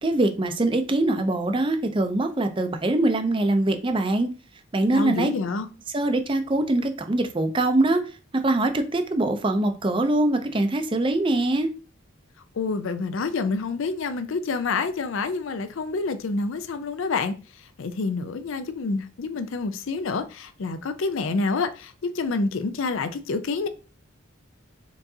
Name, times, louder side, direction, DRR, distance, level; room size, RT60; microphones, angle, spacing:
voice 1, 0.0-4.3 4.7-5.3 5.9-8.0 8.4-11.7, right 2 dB, 25° right, 0.5 m, -23 dB
voice 2, 4.9-5.7 12.5-23.7, left 4 dB, 70° left, 0.5 m, -28 dB
4.5 x 3.9 x 2.7 m
head